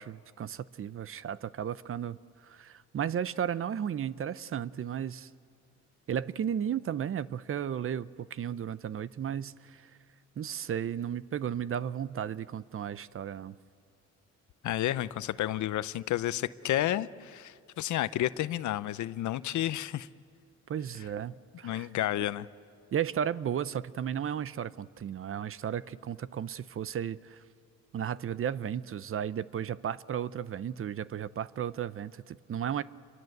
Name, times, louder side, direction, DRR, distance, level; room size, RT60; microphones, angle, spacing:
voice 1, 0.0-2.2 2.4-5.3 6.1-9.9 10.4-13.5 20.7-21.9 22.9-27.4 27.9-32.8, right 9 dB, 45° right, 17 dB, 0.7 m, -34 dB
voice 2, 14.6-20.1 21.6-22.5, left 13 dB, 75° left, 16 dB, 0.7 m, -31 dB
28.0 x 23.0 x 8.0 m, 2.2 s
cardioid pair, 90°, 30 cm